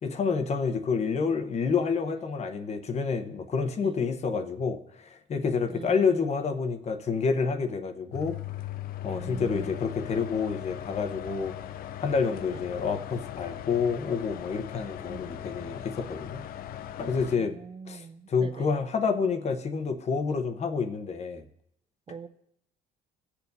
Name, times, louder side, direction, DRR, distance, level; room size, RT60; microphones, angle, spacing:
voice 1, 0.0-8.6 9.0-11.5 12.0-16.4 17.0-17.6 17.9-21.4, left 5 dB, 40° left, 0.9 m, -28 dB
voice 2, 5.7-6.3 9.1-9.8 12.5-12.6 15.1-15.2 17.4-18.7 22.1-22.3, right 5 dB, 30° right, 0.5 m, -43 dB
sound 1, 8.1-17.4, left 12 dB, 60° left, 0.5 m, -39 dB
19.0 x 7.0 x 2.7 m
cardioid pair, 110°, 17 cm